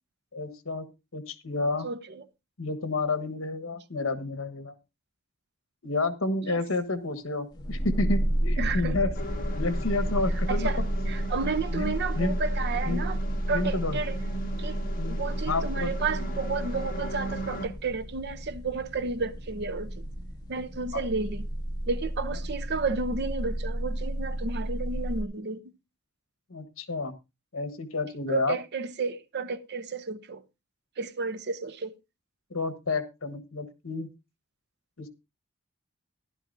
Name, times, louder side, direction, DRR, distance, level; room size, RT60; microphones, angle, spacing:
voice 1, 0.3-0.9 1.1-1.9 2.6-4.7 5.8-9.1 9.5-10.9 11.7-12.4 12.9-13.1 13.5-14.0 15.0-15.9 20.9-21.0 26.5-27.2 27.5-28.6 32.5-34.1 35.0-35.1, left 3 dB, 75° left, 1.4 m, -30 dB
sound 1, 7.5-25.2, right 1 dB, 20° left, 2.3 m, -31 dB
voice 2, 8.6-9.0 10.5-10.8 11.1-13.2 13.5-14.1 14.6-14.8 15.1-20.1 20.5-21.5 21.9-25.6 28.3-30.4 31.0-31.9, right 4 dB, 55° right, 0.7 m, -32 dB
sound 2, 9.1-17.7, right 1 dB, 45° left, 1.9 m, -39 dB
15.0 x 11.5 x 2.6 m
head